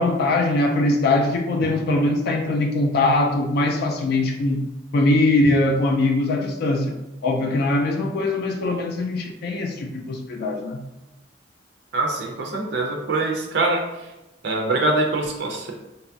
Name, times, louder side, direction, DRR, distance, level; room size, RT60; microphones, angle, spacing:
voice 1, 0.0-4.6 4.9-7.0 7.2-10.8, left 2 dB, 55° left, 2 dB, 0.3 m, -21 dB
voice 2, 11.9-13.8 14.4-15.7, right 2 dB, 65° right, 1 dB, 0.4 m, -23 dB
2.8 x 2.2 x 2.6 m, 0.99 s
head